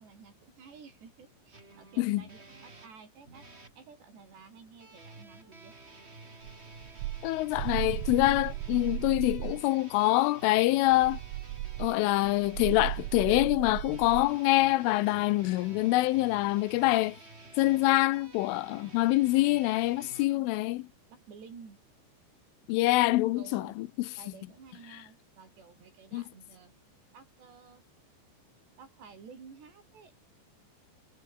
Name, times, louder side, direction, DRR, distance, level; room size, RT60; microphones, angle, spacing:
voice 1, 0.0-3.5 3.8-5.8 20.1-20.5 21.1-21.8 23.3-23.8 24.2-26.7 27.1-27.9 28.8-30.2, right 5 dB, 60° right, 7.6 m, -52 dB
sound 1, 1.5-3.8 4.8-20.2, right 3 dB, 15° right, 2.4 m, -51 dB
sound 2, 6.5-9.7 10.9-14.3, right 16 dB, 80° right, 3.5 m, -36 dB
voice 2, 7.2-11.2 11.8-17.2 17.6-20.8 22.7-23.9 26.1-26.2, left 18 dB, 85° left, 3.5 m, -25 dB
omnidirectional pair, 5.5 m